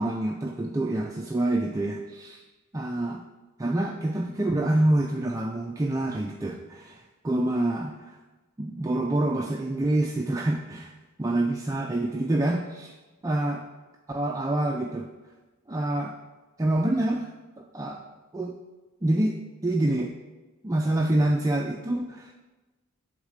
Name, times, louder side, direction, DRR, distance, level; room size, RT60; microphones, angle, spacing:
voice 1, 0.0-2.4 2.7-3.2 3.6-8.2 8.6-10.9 11.2-12.9 13.2-13.6 14.1-15.1 15.7-16.2 16.6-17.3 17.7-18.0 18.3-18.5 19.0-19.4 19.6-20.1 20.6-22.3, right 1 dB, 15° right, 1 dB, 0.4 m, -26 dB
8.2 x 3.7 x 6.5 m, 1.2 s
head